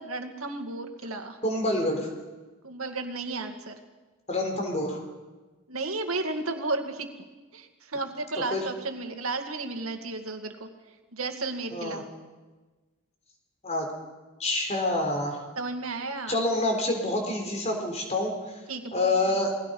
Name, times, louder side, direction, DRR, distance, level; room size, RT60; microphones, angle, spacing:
voice 1, 0.0-1.4 2.6-3.8 5.7-7.1 7.5-10.7 11.1-12.0 15.6-16.4 18.7-19.1, right 3 dB, 85° right, 6 dB, 2.2 m, -33 dB
voice 2, 1.4-2.1 4.3-5.0 8.5-8.6 11.7-12.0 13.6-13.9 14.4-15.4 16.3-18.3 18.9-19.5, left 2 dB, 30° left, 2 dB, 4.1 m, -27 dB
28.5 x 19.5 x 5.4 m, 1.3 s
head